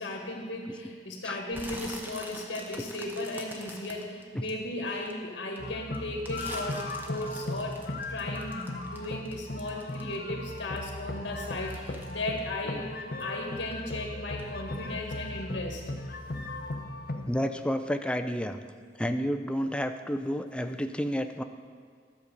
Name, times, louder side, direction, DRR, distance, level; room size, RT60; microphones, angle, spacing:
voice 1, 0.0-15.8, left 1 dB, 80° left, 1 dB, 1.5 m, -36 dB
sound 1, 1.5-5.1 5.5-10.3 10.6-13.3 13.6-14.0 14.4-14.5, right 1 dB, 10° right, 0.9 m, -45 dB
sound 2, 5.6-17.4, left 2 dB, 55° left, 0.8 m, -37 dB
voice 2, 17.3-18.6 19.0-21.4, equal, 5° left, 7 dB, 0.4 m, -30 dB
12.0 x 7.1 x 5.2 m, 2.1 s
head